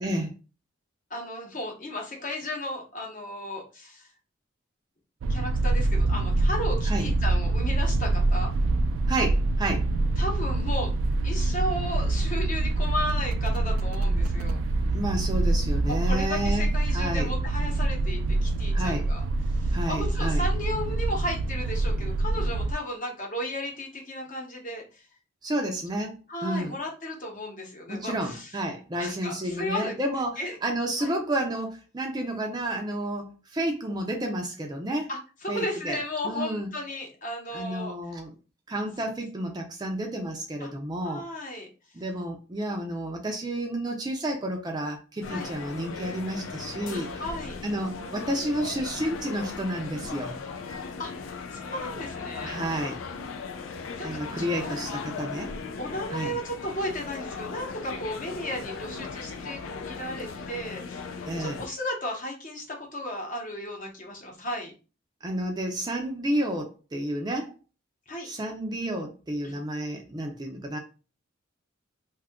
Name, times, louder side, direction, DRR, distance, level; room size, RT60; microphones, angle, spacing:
voice 1, 0.0-0.3 6.9-7.1 9.1-9.9 14.9-16.7 16.9-17.3 18.7-19.0 19.7-20.4 25.4-26.2 26.4-26.7 27.9-35.1 35.5-36.0 36.2-36.7 37.5-38.3 38.7-41.2 41.9-47.2 47.6-50.4 52.4-53.0 54.0-55.5 56.1-56.3 61.2-61.6 65.2-67.5 68.2-70.8, right 1 dB, 20° right, 2 dB, 0.4 m, -31 dB
voice 2, 1.1-4.1 5.3-8.5 10.2-10.9 11.2-14.6 15.8-19.2 19.5-25.0 26.3-28.5 28.9-29.9 30.4-30.5 31.0-31.1 35.1-37.9 40.6-40.7 41.0-41.7 45.3-45.5 46.9-47.6 51.0-52.5 54.0-55.0 55.8-61.0 61.4-64.7 68.1-68.3 69.4-69.6, left 1 dB, 40° left, 0 dB, 0.9 m, -34 dB
sound 1, 5.2-22.7, right 2 dB, 90° right, 0.3 m, -25 dB
sound 2, 45.2-61.7, left 4 dB, 75° left, 0.4 m, -38 dB
2.7 x 2.4 x 3.5 m, 0.33 s
head